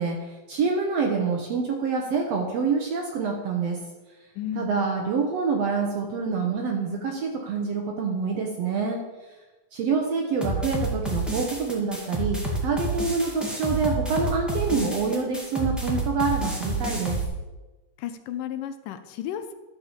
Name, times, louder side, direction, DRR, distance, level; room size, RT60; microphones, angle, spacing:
voice 1, 0.0-3.8 4.5-9.0 9.7-17.2, right 5 dB, 65° right, 2 dB, 1.6 m, -26 dB
voice 2, 4.4-4.7 18.0-19.5, left 10 dB, 80° left, 10 dB, 2.2 m, -33 dB
sound 1, 10.4-17.2, right 1 dB, ahead, 0.5 m, -29 dB
12.0 x 4.8 x 7.2 m, 1.1 s
omnidirectional pair, 3.9 m